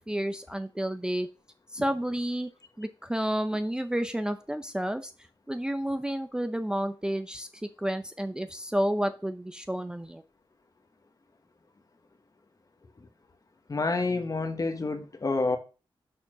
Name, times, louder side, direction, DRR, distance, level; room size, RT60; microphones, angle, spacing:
voice 1, 0.1-1.3 1.7-2.5 2.8-5.1 5.5-10.2, right 1 dB, 10° right, 0.5 m, -30 dB
voice 2, 13.7-15.6, left 3 dB, 40° left, 1.2 m, -28 dB
6.6 x 4.3 x 6.0 m
wide cardioid pair, 85°, 9 cm